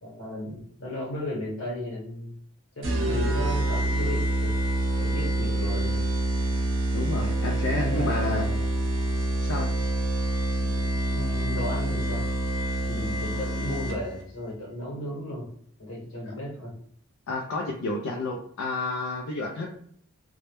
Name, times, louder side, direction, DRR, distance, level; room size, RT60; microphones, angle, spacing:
voice 1, 0.0-2.3 2.8-4.5 5.0-6.1 7.8-8.6 10.6-12.3 12.8-15.5 15.8-16.7, left 1 dB, 70° left, -4 dB, 1.0 m, -35 dB
sound 1, 2.8-14.2, right 1 dB, 60° right, 0.7 m, -26 dB
voice 2, 6.9-8.5 9.4-9.7 16.2-16.3 17.3-19.7, left 2 dB, 90° left, 1 dB, 0.4 m, -30 dB
2.2 x 2.0 x 2.9 m, 0.63 s
head